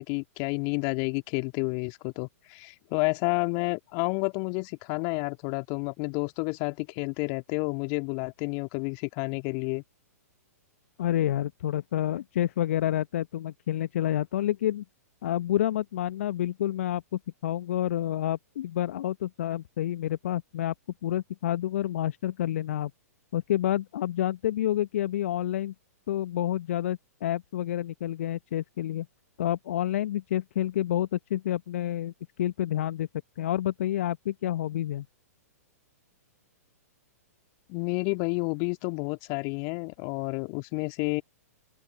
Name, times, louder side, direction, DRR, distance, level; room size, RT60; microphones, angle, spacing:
voice 1, 0.0-9.8 37.7-41.2, left 37 dB, 35° left, 2.1 m, -30 dB
voice 2, 11.0-14.8 15.2-17.0 17.4-20.7 21.0-22.9 23.3-25.7 26.1-29.1 29.4-32.1 32.4-33.1 33.4-35.1, left 12 dB, 55° left, 1.1 m, -28 dB
open air
figure-of-eight pair, 110°, 9 cm